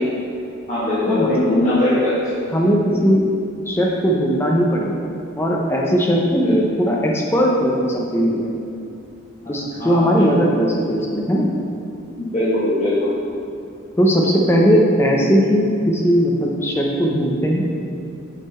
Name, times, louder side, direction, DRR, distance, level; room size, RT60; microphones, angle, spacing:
voice 1, 0.7-2.1 6.4-6.5 9.4-9.5 9.8-10.5 12.2-13.1, left 1 dB, 35° left, -13 dB, 1.4 m, -20 dB
voice 2, 2.5-3.2 3.7-5.1 5.4-8.6 9.5-11.5 14.0-17.7, equal, 10° left, -2 dB, 0.5 m, -18 dB
8.3 x 3.7 x 4.2 m, 2.6 s
head